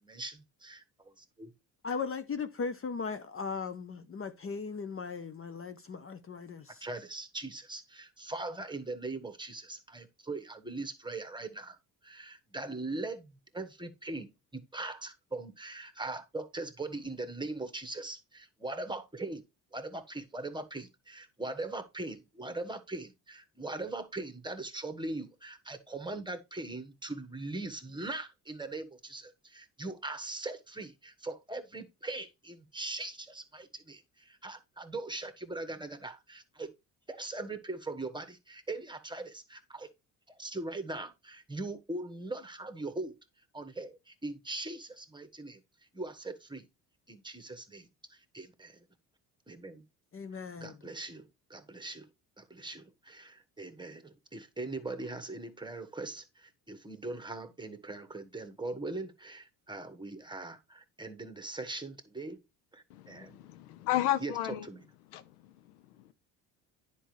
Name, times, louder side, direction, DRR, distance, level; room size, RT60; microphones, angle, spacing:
voice 1, 0.0-1.5 6.8-11.8 12.0-19.4 19.7-36.7 37.1-39.9 40.3-43.2 43.5-45.6 45.9-46.7 47.1-48.8 49.5-49.8 50.6-52.1 52.4-62.4 62.7-63.4 64.2-64.3 64.7-64.8, right 2 dB, 10° right, 1.5 m, -41 dB
voice 2, 1.8-6.8 50.1-50.7, left 5 dB, 30° left, 0.8 m, -38 dB
voice 3, 62.9-64.7 65.0-66.1, left 13 dB, 85° left, 0.8 m, -34 dB
10.0 x 5.3 x 3.3 m
hypercardioid pair, 60°, 45 cm